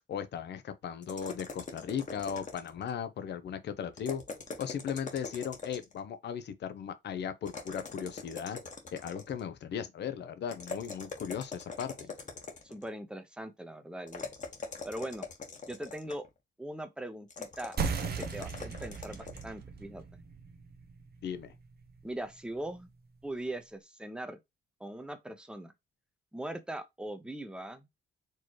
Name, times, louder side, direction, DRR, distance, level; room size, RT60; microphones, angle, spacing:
voice 1, 0.1-4.2 4.6-8.6 8.9-11.9 21.2-21.5, left 8 dB, 60° left, 0.8 m, -37 dB
sound 1, 1.0-2.9 3.9-6.0 7.5-9.4 10.5-12.9 14.1-16.3 17.3-19.5, left 4 dB, 40° left, 1.3 m, -43 dB
voice 2, 12.6-14.3 14.8-15.3 15.7-16.3 16.6-17.7 18.2-20.0 22.0-22.9 23.2-24.4 24.8-25.7 26.3-27.9, right 1 dB, 5° right, 0.9 m, -40 dB
sound 2, 17.8-22.9, right 5 dB, 50° right, 0.8 m, -38 dB
4.6 x 3.1 x 3.0 m
cardioid pair, 90°, 20 cm